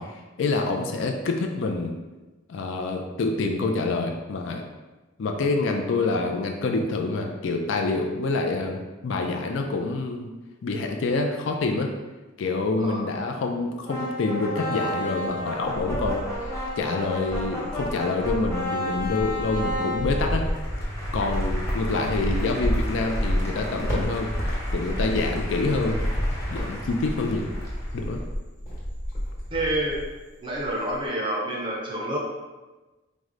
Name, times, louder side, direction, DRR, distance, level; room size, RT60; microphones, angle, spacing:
voice 1, 0.0-1.9 2.5-4.6 5.2-10.3 10.6-11.9 12.4-20.5 21.1-26.0 26.5-27.5 27.9-28.2, left 3 dB, 70° left, 3 dB, 0.4 m, -27 dB
sound 1, 13.9-28.0, left 1 dB, 15° left, 0.9 m, -34 dB
Cricket, 15.4-16.8 17.3-30.2 30.5-31.1, equal, 40° left, 1.2 m, -30 dB
voice 2, 29.5-30.0 30.4-32.2, right 1 dB, 25° right, -3 dB, 0.5 m, -28 dB
4.6 x 2.1 x 3.7 m, 1.2 s
head